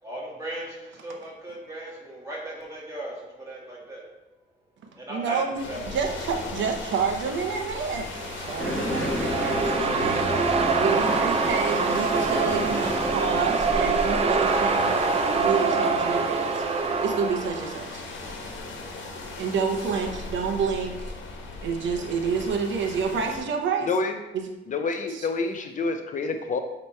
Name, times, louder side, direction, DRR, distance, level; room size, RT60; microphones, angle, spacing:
voice 1, 0.0-4.0 4.9-6.2, right 1 dB, 15° right, -5 dB, 1.9 m, -37 dB
voice 2, 5.1-10.2 10.8-18.0 19.4-21.1 21.6-23.9 24.3-24.4 25.1-25.3, right 5 dB, 75° right, 4 dB, 0.7 m, -29 dB
sound 1, 5.6-23.4, left 3 dB, 85° left, 1.3 m, -37 dB
sound 2, 8.0-17.9, right 4 dB, 30° right, 0.5 m, -25 dB
sound 3, 8.6-14.6, left 1 dB, 5° left, 0.9 m, -31 dB
voice 3, 23.9-24.2 24.7-26.6, left 3 dB, 40° left, 6 dB, 0.5 m, -27 dB
8.8 x 3.0 x 4.4 m, 1.0 s
wide cardioid pair, 170°, 19 cm